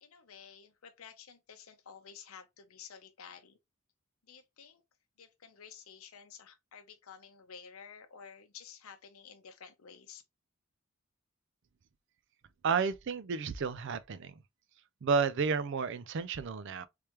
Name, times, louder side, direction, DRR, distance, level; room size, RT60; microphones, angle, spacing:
voice 1, 0.0-3.6 4.2-4.8 5.2-10.2, left 7 dB, 85° left, 0.7 m, -52 dB
voice 2, 12.6-14.3 15.0-16.9, right 5 dB, 60° right, 0.4 m, -31 dB
3.3 x 3.3 x 2.9 m
head